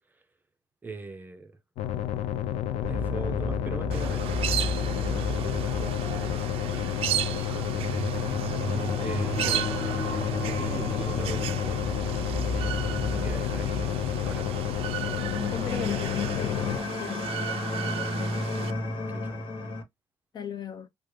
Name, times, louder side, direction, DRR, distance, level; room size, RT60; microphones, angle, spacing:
voice 1, 0.8-1.6 2.8-6.3 6.7-8.1 9.0-9.7 10.4-11.9 12.2-12.8 13.1-14.9 17.8-18.2 19.1-19.5, right 3 dB, 15° right, 0.6 m, -42 dB
sound 1, 1.8-16.8, left 11 dB, 90° left, 0.4 m, -31 dB
sound 2, 2.8-19.8, left 1 dB, 65° left, 1.3 m, -33 dB
sound 3, 3.9-18.7, right 11 dB, 70° right, 0.5 m, -35 dB
voice 2, 15.5-17.3 20.3-20.9, left 7 dB, 45° left, 0.6 m, -36 dB
3.6 x 2.4 x 3.1 m
cardioid pair, 125°, 10 cm